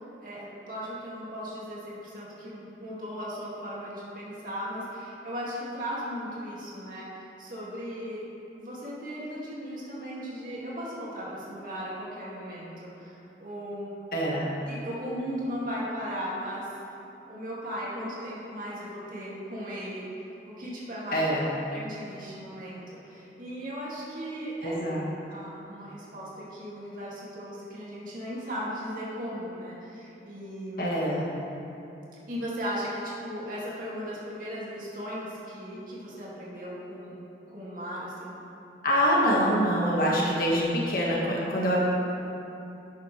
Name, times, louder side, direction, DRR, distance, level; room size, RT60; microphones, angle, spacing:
voice 1, 0.2-8.2 8.6-13.9 14.7-16.7 17.3-20.1 20.5-21.2 21.7-24.7 25.3-30.9 32.3-37.2 37.5-38.3, equal, 50° right, -7 dB, 2.3 m, -37 dB
voice 2, 14.1-14.5 21.1-21.5 24.6-25.0 30.8-31.3 38.8-41.9, equal, 50° left, -5 dB, 1.7 m, -25 dB
11.5 x 9.0 x 3.3 m, 2.8 s
head